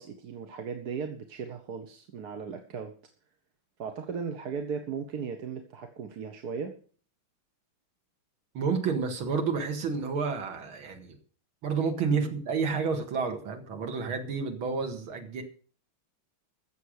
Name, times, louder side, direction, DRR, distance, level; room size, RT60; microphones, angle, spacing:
voice 1, 0.0-2.9 3.8-6.8 12.1-12.3, right 6 dB, 55° right, 6 dB, 1.4 m, -37 dB
voice 2, 8.5-11.2 11.6-15.4, right 5 dB, 70° right, 4 dB, 2.6 m, -30 dB
15.0 x 7.1 x 6.5 m, 0.44 s
omnidirectional pair, 2.4 m